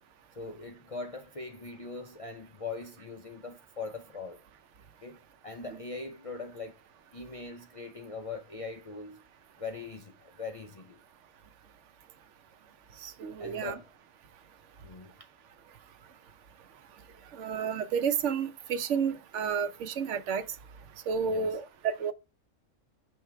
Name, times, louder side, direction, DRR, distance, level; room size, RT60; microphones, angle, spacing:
voice 1, 0.4-4.4 5.0-6.8 7.1-9.2 9.6-11.0 13.4-13.9 14.8-15.1 17.1-17.2 21.2-21.6, left 4 dB, 65° left, 0.3 m, -41 dB
voice 2, 13.0-13.7 17.4-20.4 21.1-22.1, right 6 dB, 65° right, 0.9 m, -31 dB
6.3 x 3.5 x 4.3 m
omnidirectional pair, 1.5 m